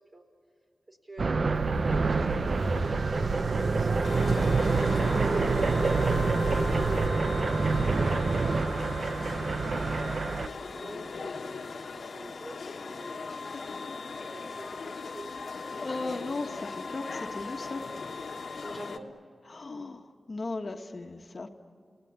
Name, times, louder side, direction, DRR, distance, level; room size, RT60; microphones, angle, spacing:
voice 1, 0.9-1.7 2.1-5.0 10.4-13.3 14.2-15.3 18.6-19.1, right 1 dB, 30° right, 3 dB, 4.1 m, -46 dB
sound 1, 1.2-10.5, right 4 dB, 60° right, 0.7 m, -27 dB
sound 2, 1.5-7.1, right 3 dB, 85° right, 1.6 m, -35 dB
sound 3, 4.0-19.0, left 4 dB, 85° left, 1.3 m, -39 dB
voice 2, 15.8-18.0 19.5-21.5, left 3 dB, 50° left, 5 dB, 1.4 m, -37 dB
30.0 x 18.0 x 10.0 m, 2.3 s
wide cardioid pair, 65°, 0 cm